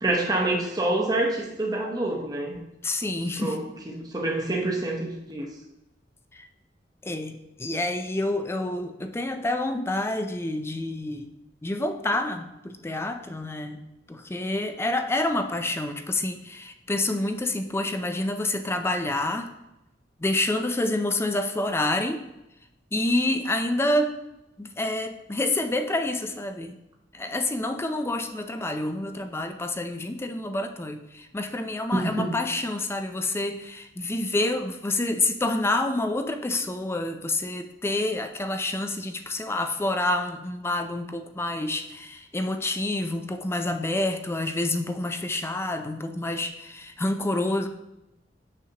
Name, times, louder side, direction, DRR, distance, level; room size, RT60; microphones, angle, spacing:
voice 1, 0.0-2.6 3.4-5.5 31.9-32.3, right 2 dB, 20° right, -1 dB, 0.8 m, -27 dB
voice 2, 2.8-3.6 6.3-6.5 7.0-11.3 11.6-13.8 14.1-19.5 20.2-22.2 22.9-24.1 24.6-26.8 27.1-47.7, left 2 dB, 15° left, 7 dB, 0.4 m, -28 dB
6.5 x 6.5 x 2.8 m, 0.89 s
head